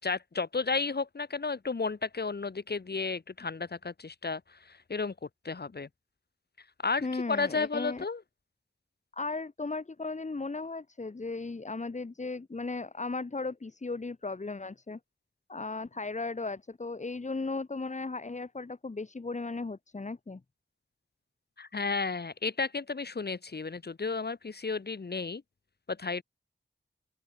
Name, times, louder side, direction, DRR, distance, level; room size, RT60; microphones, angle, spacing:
voice 1, 0.0-5.1 5.4-5.9 6.8-8.2 21.6-25.4 25.9-26.2, left 4 dB, 50° left, 1.7 m, -33 dB
voice 2, 7.0-8.0 9.1-15.0 15.5-20.4, left 3 dB, 35° left, 1.3 m, -36 dB
open air
cardioid pair, 55°, 21 cm